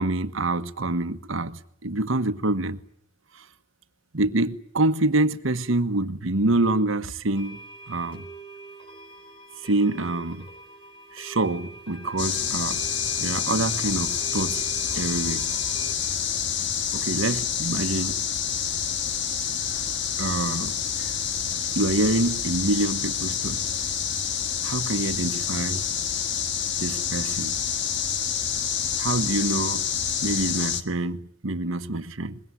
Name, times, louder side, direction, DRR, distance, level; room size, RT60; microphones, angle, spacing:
voice 1, 0.0-2.8 3.3-3.4 4.1-7.6 7.9-8.2 9.6-10.5 11.1-12.8 13.2-14.6 14.9-15.5 16.9-18.2 20.2-20.8 21.7-23.6 24.6-25.8 26.8-27.6 29.0-29.9 30.2-32.4, right 2 dB, 85° right, 1.3 m, -26 dB
sound 1, 7.4-15.9, right 2 dB, 30° left, 5.1 m, -44 dB
sound 2, 12.2-30.8, left 8 dB, 65° left, 1.6 m, -28 dB
23.5 x 22.0 x 9.8 m
head